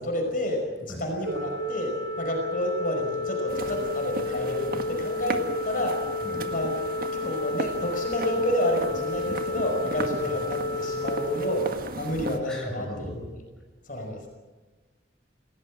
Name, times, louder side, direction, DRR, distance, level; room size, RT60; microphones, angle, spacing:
voice 1, 0.0-6.0 6.5-6.8 7.1-11.7 12.0-13.3 13.9-14.3, left 1 dB, 50° left, 2 dB, 5.3 m, -30 dB
Organ, 1.2-12.3, left 2 dB, 80° right, 5.0 m, -31 dB
sound 1, 3.5-12.4, right 2 dB, 55° right, 1.7 m, -36 dB
voice 2, 12.5-13.2, equal, 5° left, -2 dB, 7.3 m, -37 dB
27.0 x 17.5 x 7.5 m, 1.3 s
head